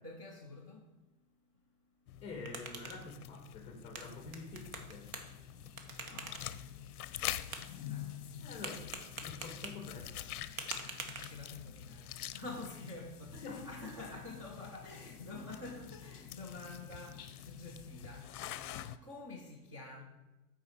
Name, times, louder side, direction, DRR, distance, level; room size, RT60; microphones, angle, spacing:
voice 1, 0.0-0.8 6.0-6.7 7.8-8.4 10.8-10.9 11.2-18.3 19.0-20.0, left 2 dB, 25° right, 0.3 m, -48 dB
sound 1, 2.1-19.0, left 12 dB, 70° left, 0.5 m, -47 dB
sound 2, 2.1-11.8, right 4 dB, 65° right, 1.2 m, -48 dB
voice 2, 2.2-5.1 8.4-10.1 13.4-13.7, left 3 dB, 15° left, 0.8 m, -47 dB
sound 3, 4.0-18.3, left 11 dB, 40° left, 0.9 m, -52 dB
8.3 x 4.7 x 4.4 m
hypercardioid pair, 155°, 46 cm